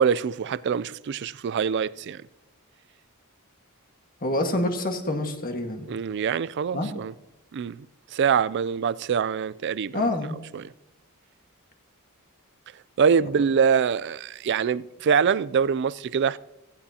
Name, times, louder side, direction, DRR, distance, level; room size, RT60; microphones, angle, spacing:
voice 1, 0.0-2.2 5.9-7.1 7.5-7.9 8.1-10.1 10.5-10.7 13.0-16.4, right 6 dB, 50° right, 0.3 m, -24 dB
voice 2, 4.2-5.9 6.7-6.9 9.9-10.4, left 1 dB, 40° left, 1.6 m, -27 dB
16.5 x 16.0 x 2.8 m
head